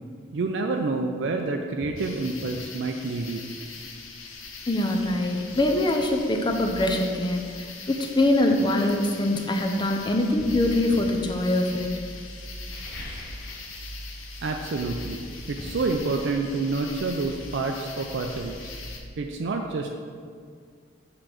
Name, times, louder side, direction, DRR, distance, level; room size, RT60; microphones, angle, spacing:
voice 1, 0.3-3.5 14.4-18.8 19.2-19.9, right 3 dB, 60° right, 3 dB, 0.4 m, -28 dB
sound 1, 1.8-2.0 2.4-2.6 4.5-4.6 5.0-6.7 7.7-7.9 8.4-9.8 10.4-11.2 12.5-13.8 14.0-14.4 14.7-18.3 18.6-18.7, left 1 dB, 55° left, 1.1 m, -45 dB
sound 2, 2.0-19.0, left 3 dB, 90° left, 0.9 m, -40 dB
voice 2, 4.7-11.9, left 1 dB, 25° left, 3 dB, 0.6 m, -24 dB
6.8 x 3.8 x 6.0 m, 2.1 s
head